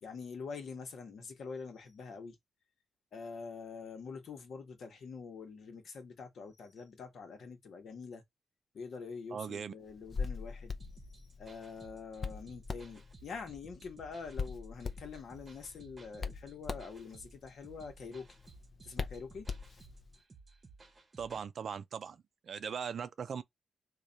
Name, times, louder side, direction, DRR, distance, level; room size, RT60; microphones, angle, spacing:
voice 1, 0.0-2.4 3.1-8.2 8.7-10.8 11.2-18.3 18.8-19.5, left 5 dB, 70° left, 1.0 m, -45 dB
voice 2, 9.3-9.7 21.2-23.4, right 7 dB, 60° right, 0.4 m, -39 dB
Hands, 9.9-20.1, left 5 dB, 45° left, 0.5 m, -43 dB
sound 1, 10.8-21.5, right 4 dB, 35° right, 0.8 m, -58 dB
3.2 x 2.4 x 3.9 m
cardioid pair, 85°, 0 cm